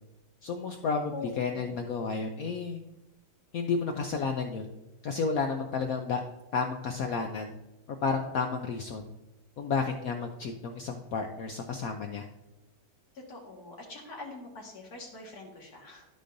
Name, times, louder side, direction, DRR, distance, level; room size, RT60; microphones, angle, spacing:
voice 1, 0.4-2.8 3.5-4.7 5.0-6.2 6.5-7.5 8.0-9.0 9.6-12.3, left 5 dB, 70° left, 4 dB, 0.8 m, -31 dB
voice 2, 1.1-1.8 13.1-16.1, left 3 dB, 55° left, -1 dB, 2.1 m, -44 dB
12.5 x 5.0 x 2.6 m, 1.0 s
omnidirectional pair, 2.0 m